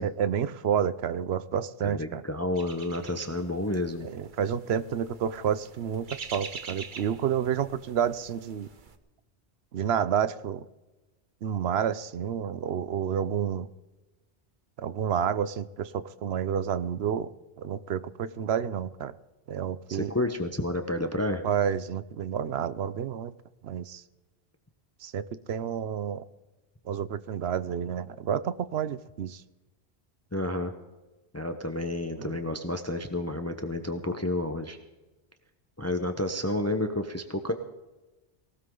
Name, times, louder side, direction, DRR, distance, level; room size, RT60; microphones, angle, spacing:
voice 1, 0.0-2.2 4.0-8.7 9.7-10.6 11.4-13.7 14.8-17.3 17.6-19.1 19.5-20.1 21.4-23.3 23.6-24.0 25.0-26.2 26.9-29.4 32.2-32.3, right 8 dB, 75° right, 15 dB, 0.9 m, -29 dB
voice 2, 1.8-4.1 19.9-21.4 30.3-30.7 31.3-34.8 35.8-37.5, left 1 dB, 15° left, 7 dB, 0.9 m, -30 dB
sound 1, 2.6-9.0, right 5 dB, 50° right, 1.1 m, -45 dB
18.5 x 18.5 x 3.8 m, 1.1 s
omnidirectional pair, 1.1 m